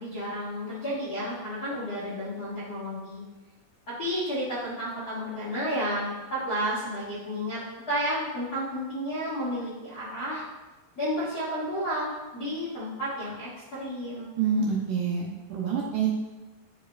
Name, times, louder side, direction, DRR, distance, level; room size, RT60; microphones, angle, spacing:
voice 1, 0.0-3.2 3.9-7.6 7.9-10.4 10.9-14.4, equal, 90° left, -10 dB, 0.8 m, -31 dB
voice 2, 14.4-16.1, right 6 dB, 75° right, -3 dB, 2.0 m, -27 dB
10.0 x 5.0 x 2.4 m, 1.2 s
omnidirectional pair, 4.5 m